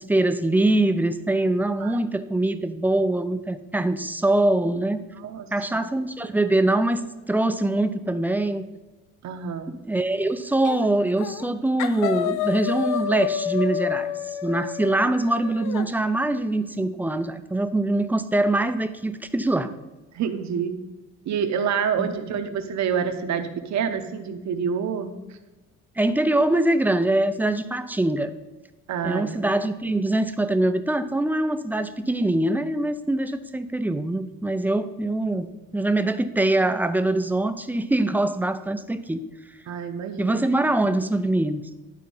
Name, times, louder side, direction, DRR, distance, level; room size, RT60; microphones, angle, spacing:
voice 1, 0.0-5.0 5.5-7.0 7.3-8.7 9.7-14.1 14.4-19.7 22.0-22.1 26.0-28.3 29.0-39.2 40.2-41.6, right 2 dB, 5° right, 9 dB, 0.5 m, -23 dB
voice 2, 9.2-9.7 20.1-20.7 21.3-25.1 28.9-29.5 39.7-40.5, right 7 dB, 60° right, 7 dB, 1.0 m, -27 dB
sound 1, 10.6-10.9 11.2-11.5 11.8-15.9, left 9 dB, 75° left, 0.7 m, -29 dB
11.0 x 4.1 x 5.4 m, 1.1 s
cardioid pair, 120°, 32 cm